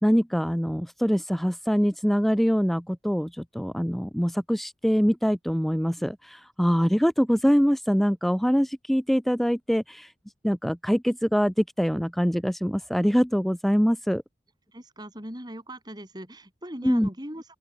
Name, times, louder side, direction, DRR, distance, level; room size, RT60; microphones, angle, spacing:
voice 1, 0.0-10.1 10.4-14.2 16.8-17.1, equal, ahead, 0.6 m, -24 dB
voice 2, 14.7-17.4, right 1 dB, 25° right, 5.7 m, -39 dB
open air
head